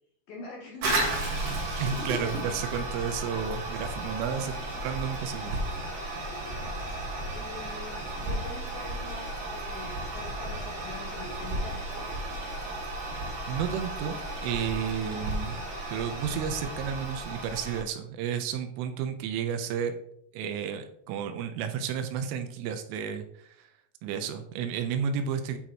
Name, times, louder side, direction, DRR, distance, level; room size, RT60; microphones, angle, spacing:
voice 1, 0.3-1.1 1.8-2.6 4.2-4.7 6.3-12.3, left 3 dB, 90° left, 0 dB, 2.0 m, -45 dB
Toilet flush, 0.8-17.8, right 1 dB, 55° right, 2.9 m, -34 dB
voice 2, 1.8-4.6 4.8-5.6 13.5-15.6 15.9-19.9 20.3-23.7 24.0-25.6, right 7 dB, 85° right, 8 dB, 3.3 m, -32 dB
10.0 x 8.1 x 3.1 m, 0.70 s
omnidirectional pair, 5.9 m